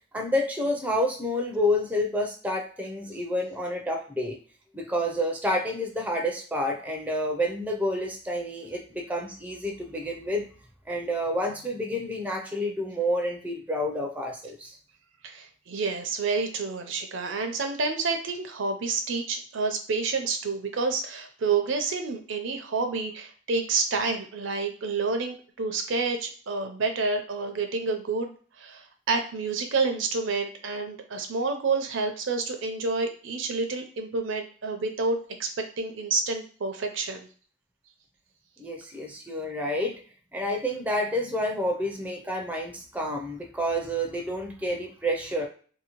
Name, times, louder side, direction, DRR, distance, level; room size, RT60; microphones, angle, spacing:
voice 1, 0.1-4.4 4.7-10.4 10.9-14.8 38.6-40.0 40.3-45.5, equal, 5° right, 1 dB, 0.4 m, -29 dB
voice 2, 15.2-28.3 28.6-35.5 35.8-37.3, right 4 dB, 65° right, 5 dB, 0.5 m, -29 dB
2.7 x 2.6 x 2.9 m, 0.42 s
head